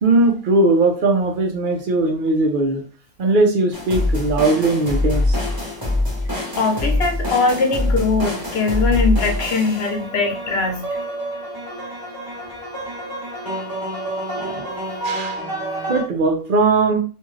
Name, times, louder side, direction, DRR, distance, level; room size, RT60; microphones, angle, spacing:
voice 1, 0.0-2.8 3.2-5.4 14.4-14.7 15.0-15.4 15.9-17.0, right 2 dB, 60° right, 3 dB, 0.8 m, -19 dB
sound 1, 3.7-16.0, left 1 dB, 25° right, 0.9 m, -25 dB
voice 2, 6.6-10.9, left 3 dB, 75° left, 2 dB, 1.0 m, -21 dB
2.6 x 2.3 x 3.1 m, 0.38 s
omnidirectional pair, 1.1 m